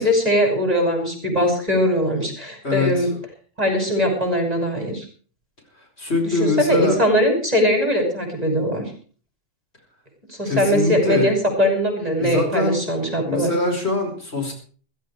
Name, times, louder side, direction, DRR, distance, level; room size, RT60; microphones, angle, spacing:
voice 1, 0.0-3.1 3.6-5.1 6.2-8.9 10.3-13.5, equal, 30° right, 3 dB, 6.0 m, -21 dB
voice 2, 2.6-3.1 6.0-7.0 10.5-11.3 12.2-12.8 13.2-14.5, left 2 dB, 55° left, 2 dB, 5.2 m, -23 dB
15.5 x 14.5 x 4.8 m, 0.43 s
omnidirectional pair, 1.3 m